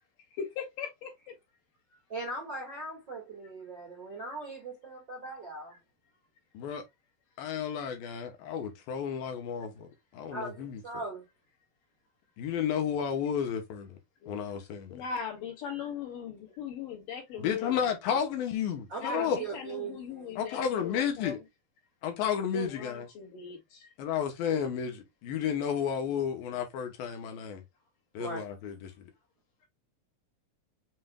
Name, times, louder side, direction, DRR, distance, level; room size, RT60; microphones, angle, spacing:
voice 1, 0.4-1.1 14.2-14.4 14.9-17.9 19.0-21.4 22.5-23.9, left 7 dB, 60° left, 3.6 m, -39 dB
voice 2, 2.1-5.7 10.3-11.2 18.9-20.3 28.2-28.4, right 3 dB, 45° right, 1.5 m, -39 dB
voice 3, 7.4-10.8 12.4-13.9 14.3-15.0 17.4-19.4 20.4-21.4 22.0-23.1 24.0-27.6 28.1-28.9, left 8 dB, 75° left, 2.5 m, -32 dB
7.7 x 3.1 x 2.2 m
omnidirectional pair, 4.4 m